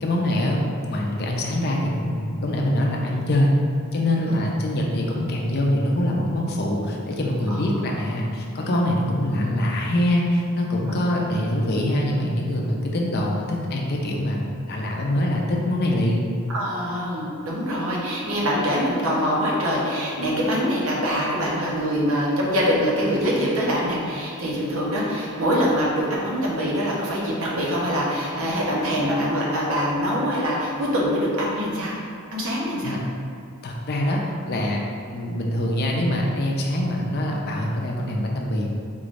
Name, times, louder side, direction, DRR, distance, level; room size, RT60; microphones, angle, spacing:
voice 1, 0.0-3.5 3.9-16.2 32.8-33.0 33.6-34.2 34.5-34.8 35.1-38.7, left 1 dB, 50° left, -1 dB, 0.5 m, -24 dB
voice 2, 16.5-32.0 32.3-33.0, equal, 70° right, -4 dB, 0.8 m, -24 dB
3.8 x 3.2 x 2.5 m, 2.4 s
head